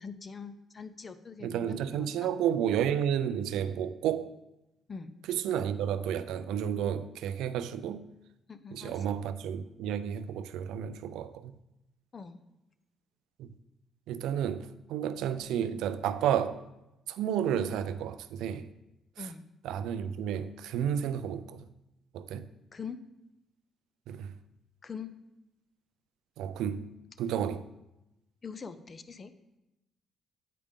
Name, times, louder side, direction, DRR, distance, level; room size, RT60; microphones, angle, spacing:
voice 1, 0.0-2.1 4.9-5.1 8.5-9.0 12.1-12.4 19.2-19.5 22.7-23.0 24.8-25.1 28.4-29.3, left 5 dB, 35° left, 0.5 m, -43 dB
voice 2, 1.4-4.3 5.3-8.1 8.7-11.6 13.4-13.6 14.1-16.6 17.1-18.7 19.2-19.3 19.6-21.7 22.1-22.5 24.1-24.3 26.4-26.9 27.2-27.7, right 9 dB, 90° right, 0.3 m, -31 dB
8.4 x 5.0 x 3.6 m
cardioid pair, 90°, 0 cm